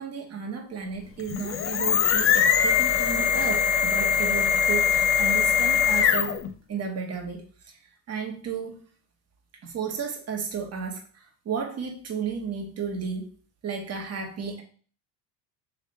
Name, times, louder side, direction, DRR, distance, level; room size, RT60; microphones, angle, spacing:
voice 1, 0.0-6.4 6.7-7.8 8.1-8.8 9.6-11.0 11.4-13.3 13.6-14.6, right 6 dB, 35° right, 2 dB, 1.2 m, -33 dB
sound 1, 1.2-6.5, left 7 dB, 30° left, 0.4 m, -22 dB
3.4 x 3.2 x 4.1 m, 0.42 s
supercardioid pair, 105°, 45 cm